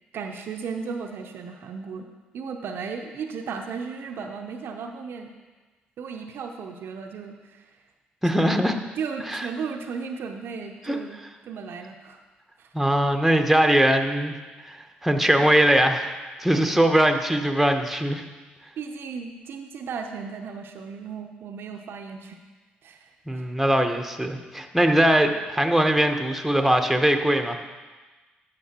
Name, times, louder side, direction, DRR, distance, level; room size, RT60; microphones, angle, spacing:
voice 1, 0.1-2.1 2.3-5.3 6.0-7.7 8.4-8.6 9.0-11.2 11.5-12.2 12.6-12.7 16.6-16.7 18.8-22.4 22.8-23.4, right 5 dB, 65° right, 4 dB, 0.6 m, -35 dB
voice 2, 8.2-8.7 9.3-9.5 10.9-11.0 12.7-14.3 14.6-14.8 15.0-16.1 16.4-18.2 23.3-27.6, right 1 dB, ahead, 5 dB, 0.9 m, -21 dB
12.5 x 5.3 x 2.9 m, 1.3 s
hypercardioid pair, 55°, 4 cm